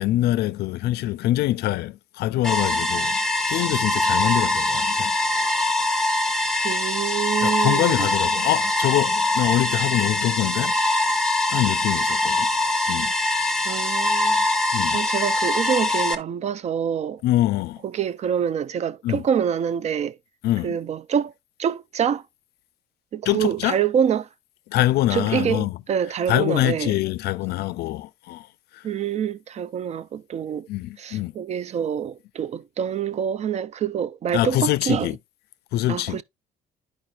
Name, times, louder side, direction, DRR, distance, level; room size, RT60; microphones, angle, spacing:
voice 1, 0.0-3.2 3.5-5.2 7.4-10.8 11.5-12.5 12.9-13.1 14.7-15.0 17.2-17.8 19.0-19.2 20.4-20.8 23.3-23.8 24.7-25.8 26.3-28.5 28.7-28.8 30.7-31.3 34.3-35.2 35.7-36.2, left 15 dB, 70° left, 0.4 m, -24 dB
sound 1, 2.4-16.1, left 2 dB, 5° left, 0.7 m, -23 dB
voice 2, 6.6-8.1 13.6-14.4 14.9-17.2 17.8-20.2 20.6-21.3 21.6-22.2 23.1-24.3 25.1-27.0 28.8-30.7 31.0-35.1 35.9-36.2, right 8 dB, 40° right, 0.4 m, -26 dB
10.5 x 5.0 x 2.4 m
cardioid pair, 110°, 17 cm